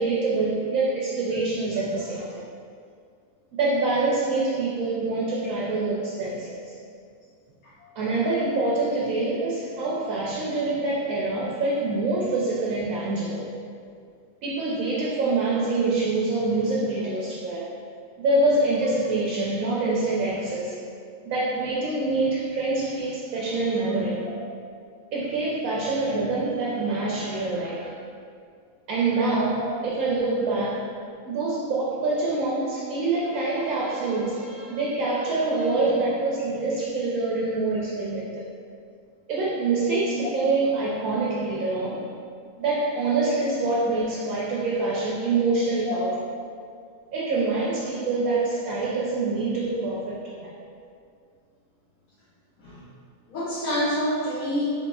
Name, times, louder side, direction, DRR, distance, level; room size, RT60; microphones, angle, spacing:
voice 1, 0.0-2.4 3.6-6.6 8.0-13.5 14.4-17.7 18.2-20.8 21.3-24.3 25.1-28.0 28.9-30.9 31.3-38.4 39.3-42.0 42.6-46.1 47.1-50.7, right 3 dB, 80° right, -5 dB, 1.0 m, -25 dB
voice 2, 53.3-54.7, equal, 85° left, -11 dB, 1.3 m, -27 dB
4.0 x 3.1 x 2.2 m, 2.2 s
omnidirectional pair, 1.5 m